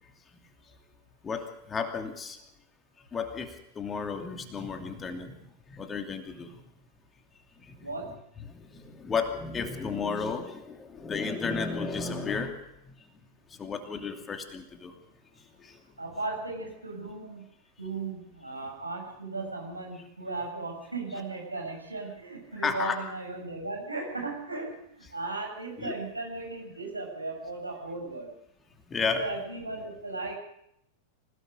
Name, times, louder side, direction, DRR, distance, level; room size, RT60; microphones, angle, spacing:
voice 1, 1.2-2.4 3.1-5.4 5.7-6.5 8.5-12.6 13.6-14.9 15.6-15.7 22.6-23.0 25.8-25.9 28.9-29.2, left 5 dB, 20° left, 5 dB, 2.7 m, -33 dB
voice 2, 16.0-17.5 17.8-28.3 29.1-30.4, right 3 dB, 85° right, 1 dB, 7.4 m, -36 dB
28.0 x 18.0 x 5.3 m, 0.77 s
figure-of-eight pair, 90°, 0 cm